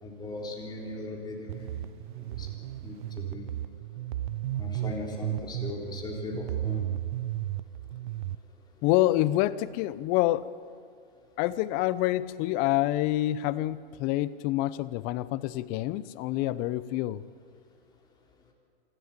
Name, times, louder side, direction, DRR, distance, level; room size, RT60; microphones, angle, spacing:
voice 1, 0.0-1.8 2.2-2.5 2.8-3.5 4.6-6.9, left 2 dB, 15° left, 0 dB, 3.7 m, -38 dB
sound 1, 1.5-8.3, right 13 dB, 50° right, 0.6 m, -34 dB
voice 2, 8.8-10.5 11.4-17.2, left 15 dB, 30° left, 17 dB, 0.7 m, -27 dB
26.5 x 13.0 x 8.9 m, 2.3 s
hypercardioid pair, 140°, 31 cm